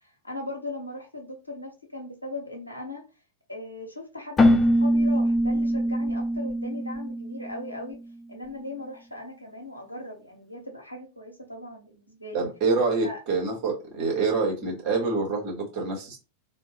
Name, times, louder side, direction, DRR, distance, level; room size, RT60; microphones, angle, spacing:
voice 1, 0.0-3.0 3.5-8.0 8.3-12.4 13.0-13.2, left 2 dB, 85° left, 0.9 m, -38 dB
Keyboard (musical), 4.4-8.0, equal, 20° left, 0.5 m, -23 dB
voice 2, 12.3-16.2, right 4 dB, 40° right, 1.6 m, -26 dB
2.9 x 2.1 x 3.3 m
figure-of-eight pair, 90°, 0 cm